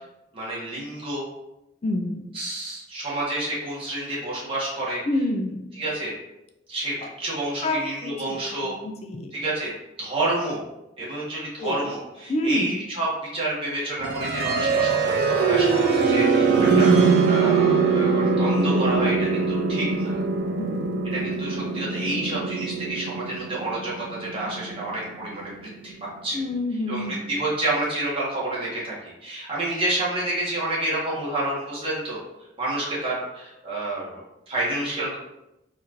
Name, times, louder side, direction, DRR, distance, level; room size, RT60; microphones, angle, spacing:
voice 1, 0.3-1.2 2.3-5.0 5.7-6.1 6.7-8.7 9.3-9.7 10.0-10.6 11.0-20.2 21.1-25.9 26.2-26.4 26.9-32.2 32.6-35.2, right 1 dB, 30° right, -6 dB, 1.2 m, -29 dB
voice 2, 1.8-2.3 5.1-5.6 7.0-7.1 7.6-9.4 11.6-11.8 12.3-12.8 20.6-21.1 26.3-27.3, left 1 dB, 35° left, 4 dB, 0.4 m, -28 dB
sound 1, 14.0-25.9, right 4 dB, 60° right, 0.4 m, -22 dB
4.2 x 2.5 x 2.9 m, 0.91 s
head